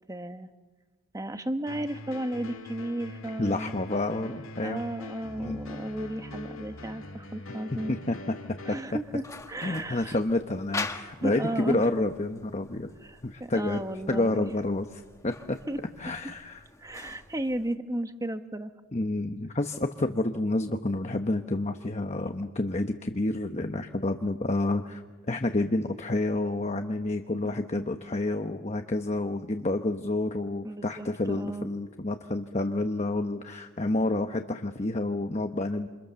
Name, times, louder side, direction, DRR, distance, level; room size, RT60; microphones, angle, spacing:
voice 1, 0.1-0.5 1.1-3.7 4.6-8.0 8.6-10.2 11.2-11.9 13.0-14.6 15.6-15.8 16.1-16.2 16.8-18.7 27.4-27.9 30.6-31.7, right 1 dB, 15° right, 9 dB, 1.1 m, -34 dB
sound 1, 1.7-8.8, left 2 dB, 65° left, 2.0 m, -43 dB
voice 2, 3.4-4.8 5.4-5.6 7.9-8.3 8.7-8.8 9.6-12.9 13.2-13.8 14.1-16.6 18.9-25.0 25.3-35.9, left 2 dB, 30° left, 6 dB, 1.0 m, -29 dB
sound 2, 8.9-17.8, left 3 dB, 15° left, 1.4 m, -43 dB
28.5 x 27.5 x 7.0 m, 1.3 s
head